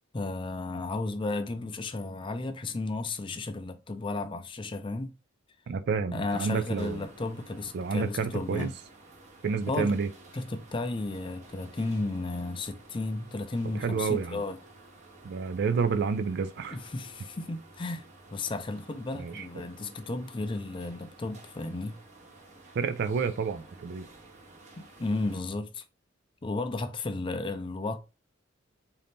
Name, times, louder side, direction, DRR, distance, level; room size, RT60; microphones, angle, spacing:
voice 1, 0.1-5.1 6.1-8.7 9.7-10.0 10.3-14.6 16.7-22.0 25.0-25.8 26.4-28.0, left 2 dB, 25° left, 0.4 m, -33 dB
voice 2, 5.7-7.1 7.7-8.7 9.4-10.1 13.7-14.4 15.2-16.8 19.1-19.5 22.7-24.1, right 5 dB, 55° right, 0.3 m, -29 dB
sound 1, 6.3-25.4, right 2 dB, 35° right, 0.9 m, -53 dB
3.8 x 2.7 x 3.5 m
head